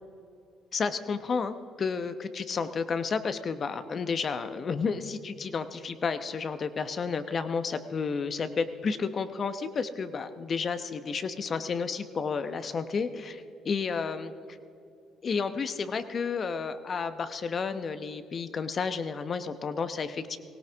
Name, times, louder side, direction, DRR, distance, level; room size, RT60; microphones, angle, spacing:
voice 1, 0.7-14.3 15.2-20.4, left 5 dB, 45° left, 11 dB, 0.9 m, -31 dB
18.5 x 17.0 x 3.5 m, 2.8 s
supercardioid pair, 70°, 0 cm